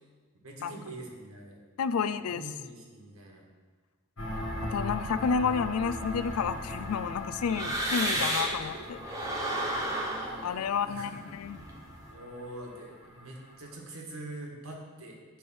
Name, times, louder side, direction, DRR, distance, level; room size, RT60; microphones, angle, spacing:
voice 1, 0.3-1.6 1.9-3.4 8.4-8.9 9.4-10.5 10.8-11.2 12.1-15.2, right 2 dB, 75° right, 0 dB, 1.6 m, -45 dB
voice 2, 1.8-2.4 4.6-9.0 10.4-11.6, left 6 dB, 90° left, 14 dB, 0.4 m, -30 dB
sound 1, 4.2-13.7, left 1 dB, 70° left, 1.7 m, -40 dB
sound 2, 6.0-8.7 9.0-12.1, right 1 dB, 15° right, 1.2 m, -33 dB
10.0 x 3.4 x 6.2 m, 1.5 s
head